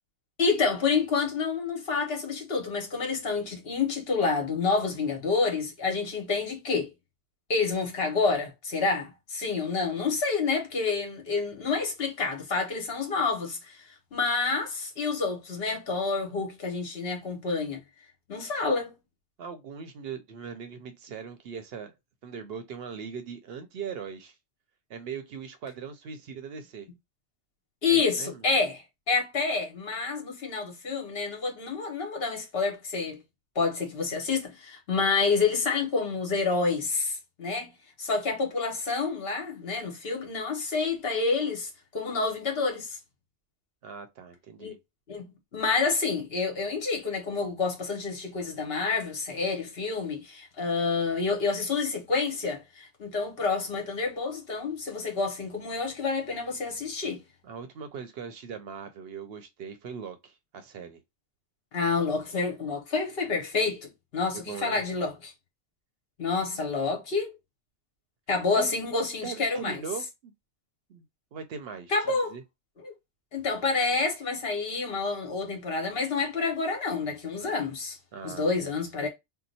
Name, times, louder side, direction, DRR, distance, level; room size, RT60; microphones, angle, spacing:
voice 1, 0.4-6.9 7.5-17.8 18.3-18.9 27.8-33.2 33.5-37.7 38.0-43.0 44.6-44.7 45.1-57.2 61.7-65.3 66.2-67.3 68.3-69.8 71.9-72.3 72.8-72.9 73.3-78.0 78.2-79.1, left 4 dB, 60° left, 1.2 m, -28 dB
voice 2, 19.4-21.9 22.2-24.4 24.9-26.9 27.9-28.4 43.8-44.8 57.4-61.0 64.3-64.8 68.6-68.9 69.2-70.3 70.9-71.0 71.3-72.4 78.1-78.5, right 6 dB, 65° right, 0.8 m, -40 dB
2.8 x 2.0 x 3.9 m
omnidirectional pair, 1.2 m